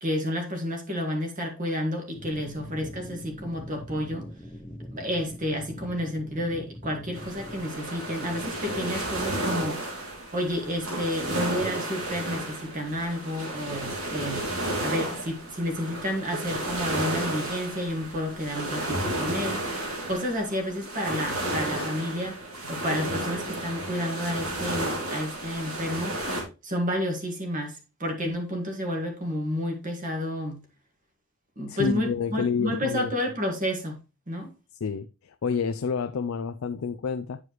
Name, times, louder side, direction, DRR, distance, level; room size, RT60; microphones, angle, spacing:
voice 1, 0.0-4.3 4.9-9.8 10.3-14.4 14.8-19.6 20.1-22.4 22.7-26.3 26.6-30.6 31.6-34.0 34.3-34.5, equal, 35° right, 1.8 m, -30 dB
sound 1, 2.2-7.6, equal, 10° left, 0.6 m, -42 dB
sound 2, 7.1-26.4, right 1 dB, 85° right, 2.7 m, -32 dB
voice 2, 31.7-33.1 34.8-37.4, left 5 dB, 65° left, 0.4 m, -29 dB
9.5 x 4.8 x 3.1 m
head